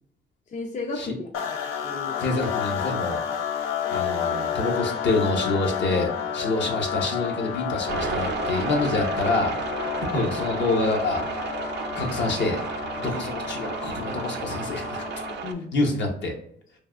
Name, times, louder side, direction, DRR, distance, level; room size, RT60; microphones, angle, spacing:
voice 1, 0.5-2.2 15.4-15.9, left 3 dB, 40° left, 1 dB, 0.5 m, -34 dB
sound 1, 1.3-15.5, left 8 dB, 90° left, 0.5 m, -31 dB
voice 2, 2.2-3.2 3.9-9.5 10.1-11.4 11.9-12.6 13.0-15.0 15.7-16.3, left 2 dB, 65° left, 1 dB, 0.9 m, -26 dB
sound 2, 7.9-15.5, right 7 dB, 60° right, 0.4 m, -33 dB
3.2 x 2.4 x 2.4 m, 0.67 s
cardioid pair, 90°, 20 cm